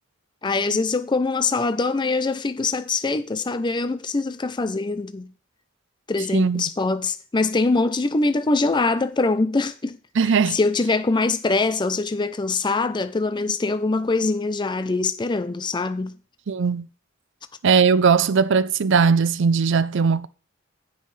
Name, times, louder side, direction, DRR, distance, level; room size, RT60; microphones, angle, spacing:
voice 1, 0.4-5.3 6.1-10.0 10.2-16.2, left 3 dB, 20° left, 0.5 m, -23 dB
voice 2, 6.3-6.7 10.2-10.6 16.5-16.9 17.6-20.3, right 5 dB, 65° right, 0.5 m, -19 dB
15.0 x 5.5 x 3.2 m
head